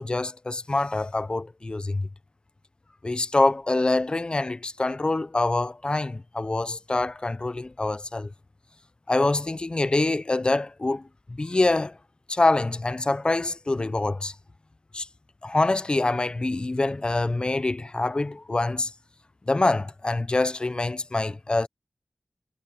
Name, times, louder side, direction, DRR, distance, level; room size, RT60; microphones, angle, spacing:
voice 1, 0.0-2.1 3.0-8.3 9.1-11.0 11.3-12.0 12.3-14.3 14.9-15.1 15.4-18.9 19.5-21.7, left 2 dB, 40° left, 0.6 m, -25 dB
wide cardioid pair, 65°, 2 cm